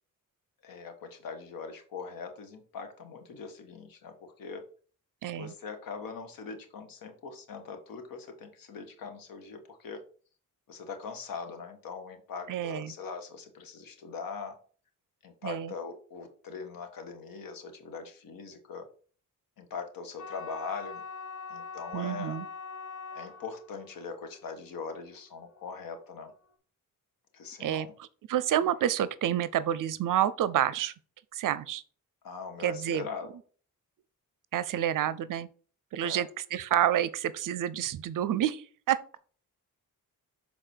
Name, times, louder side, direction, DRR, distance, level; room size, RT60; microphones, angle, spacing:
voice 1, 0.6-4.6 5.3-10.0 10.7-14.6 15.2-18.9 19.6-21.0 21.5-22.4 23.1-26.3 27.3-27.9 32.2-33.4 36.0-36.2, left 5 dB, 85° left, 1.6 m, -41 dB
voice 2, 5.2-5.5 12.5-12.9 15.4-15.7 21.9-22.5 27.6-27.9 28.3-30.9 31.3-31.8 32.6-33.1 34.5-35.5 35.9-39.0, right 11 dB, 70° right, 0.6 m, -29 dB
sound 1, 20.2-26.3, left 5 dB, 55° left, 1.6 m, -43 dB
6.7 x 4.0 x 4.5 m
cardioid pair, 115°, 33 cm